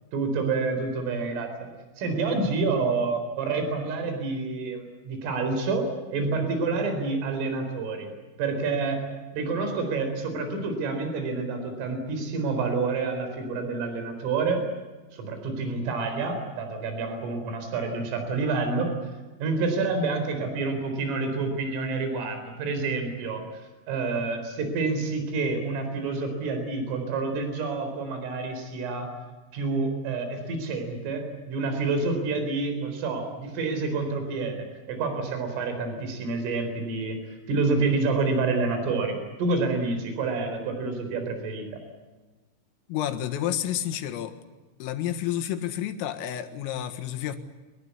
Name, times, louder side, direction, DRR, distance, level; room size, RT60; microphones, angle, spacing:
voice 1, 0.1-1.7 2.0-8.1 8.4-9.0 9.3-14.6 15.1-18.9 19.4-23.4 23.9-29.1 29.5-37.2 37.5-41.7, right 3 dB, 75° right, 6 dB, 6.7 m, -28 dB
voice 2, 42.9-44.4 44.8-47.4, left 11 dB, 85° left, 8 dB, 4.3 m, -30 dB
24.5 x 21.5 x 8.4 m, 1.2 s
omnidirectional pair, 5.9 m